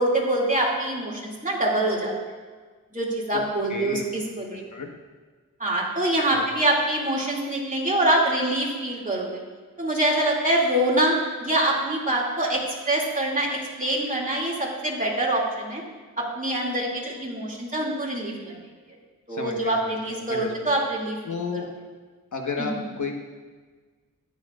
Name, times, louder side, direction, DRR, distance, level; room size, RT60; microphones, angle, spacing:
voice 1, 0.0-2.1 2.9-4.6 5.6-9.4 9.8-15.8 16.2-18.5 19.3-21.2 21.5-21.7 22.6-22.9, right 1 dB, 25° right, -3 dB, 2.6 m, -25 dB
voice 2, 3.7-4.0 4.5-4.9 6.3-6.5 19.3-20.7 21.2-21.7 22.3-23.2, left 4 dB, 60° left, 2 dB, 1.4 m, -32 dB
14.0 x 10.0 x 2.5 m, 1.4 s
wide cardioid pair, 70°, 33 cm